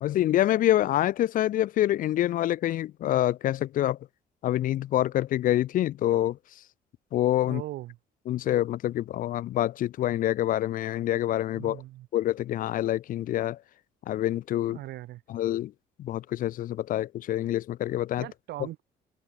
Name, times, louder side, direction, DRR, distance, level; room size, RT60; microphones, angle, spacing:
voice 1, 0.0-4.0 4.4-6.4 7.1-7.6 8.3-11.8 12.1-13.6 14.1-14.8 15.3-15.7 16.0-18.3, left 13 dB, 55° left, 0.5 m, -26 dB
voice 2, 7.4-8.0 11.5-12.1 14.7-15.2 18.2-18.8, right 16 dB, 75° right, 7.7 m, -39 dB
cardioid pair, 110°, 17 cm